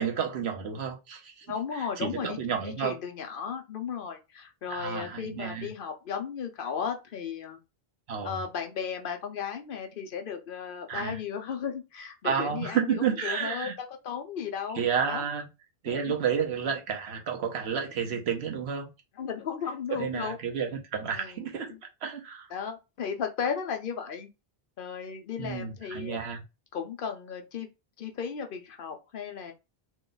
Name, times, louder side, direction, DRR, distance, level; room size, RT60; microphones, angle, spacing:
voice 1, 0.0-1.5 1.7-2.9 4.7-5.7 8.1-8.4 10.9-11.2 12.2-13.7 14.7-15.5 15.8-18.9 19.9-21.7 22.0-22.5 25.4-26.4, right 7 dB, 85° right, 1.0 m, -31 dB
voice 2, 1.5-2.4 2.6-7.6 8.2-13.7 14.0-15.2 15.9-16.1 19.2-20.4 21.1-21.8 22.5-24.3 24.8-26.2 26.7-27.7 28.0-29.5, left 7 dB, 60° left, 0.8 m, -35 dB
3.0 x 2.3 x 3.8 m
omnidirectional pair, 1.0 m